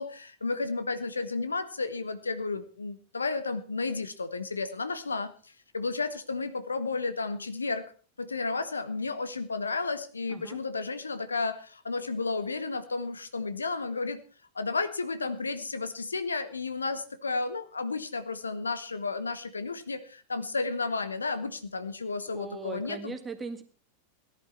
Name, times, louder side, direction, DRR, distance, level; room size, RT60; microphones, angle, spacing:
voice 1, 0.0-5.3 5.7-7.9 8.2-14.2 14.5-23.2, left 3 dB, 75° left, 12 dB, 1.2 m, -32 dB
voice 2, 22.3-23.6, right 4 dB, 15° right, 8 dB, 2.0 m, -39 dB
18.0 x 11.0 x 4.4 m, 0.37 s
figure-of-eight pair, 90°, 0 cm